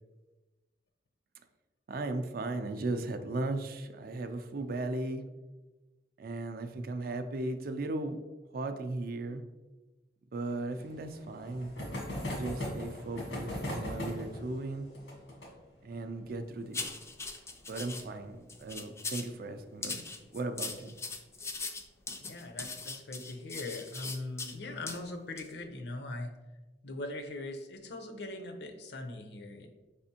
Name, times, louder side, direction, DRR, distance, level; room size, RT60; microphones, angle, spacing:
voice 1, 1.9-5.2 6.2-8.2 8.5-9.4 10.3-11.7 12.4-14.9 15.8-16.8 17.7-20.9, right 2 dB, 55° right, 8 dB, 0.4 m, -36 dB
sound 1, 10.7-19.9 20.2-20.3 20.5-20.6 20.9-21.0 22.4-22.7 23.3-23.8, left 1 dB, 85° left, 1.3 m, -41 dB
sound 2, 16.7-18.0 18.5-19.3 19.8-24.5 24.9-25.0 25.4-25.5, left 4 dB, 15° left, 0.3 m, -40 dB
voice 2, 22.2-26.3 26.8-29.7, left 2 dB, 70° left, 5 dB, 0.6 m, -41 dB
4.9 x 3.4 x 2.7 m, 1.1 s
head